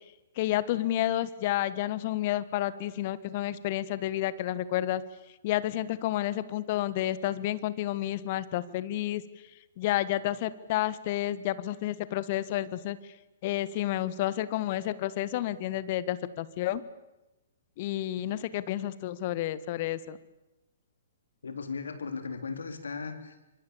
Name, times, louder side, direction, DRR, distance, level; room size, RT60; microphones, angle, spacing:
voice 1, 0.4-5.0 5.4-9.2 9.8-13.0 13.4-16.8 17.8-20.2, left 14 dB, 40° left, 16 dB, 1.5 m, -30 dB
voice 2, 21.4-23.5, left 5 dB, 70° left, 8 dB, 3.6 m, -37 dB
29.5 x 26.0 x 7.2 m, 0.97 s
figure-of-eight pair, 120°, 0 cm